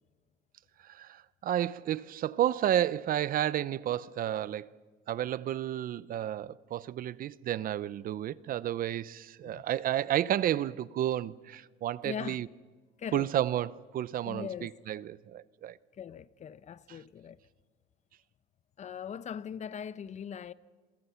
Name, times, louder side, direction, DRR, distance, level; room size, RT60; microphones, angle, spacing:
voice 1, 0.8-4.8 5.1-12.5 13.1-15.8 16.9-17.0, right 11 dB, 55° right, 0.7 m, -31 dB
voice 2, 12.0-12.4 13.0-13.3 14.2-14.7 16.0-17.4 18.8-20.5, left 8 dB, 45° left, 0.8 m, -40 dB
27.5 x 23.0 x 5.8 m
cardioid pair, 110°, 17 cm